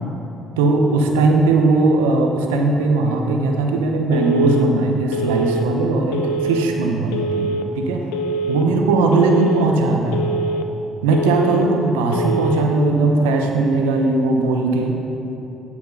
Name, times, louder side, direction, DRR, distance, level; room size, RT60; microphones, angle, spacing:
voice 1, 0.6-8.0 8.5-10.3 11.0-14.9, right 3 dB, 90° right, 2 dB, 0.7 m, -18 dB
Telephone, 4.1-4.6 5.1-5.6 6.1-6.6 7.1-7.6 8.1-8.6 9.1-9.6 10.1-10.6 11.1-11.6 12.1-12.6, right 2 dB, 85° left, 0.4 m, -24 dB
9.8 x 4.7 x 5.3 m, 3.0 s
hypercardioid pair, 55°, 0 cm